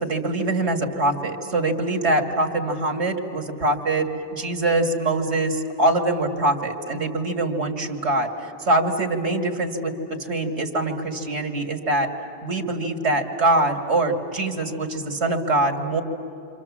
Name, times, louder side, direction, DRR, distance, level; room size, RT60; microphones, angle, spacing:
voice 1, 0.0-12.1 12.4-16.0, right 2 dB, 85° right, 3 dB, 2.2 m, -23 dB
28.5 x 26.0 x 7.3 m, 3.0 s
omnidirectional pair, 1.1 m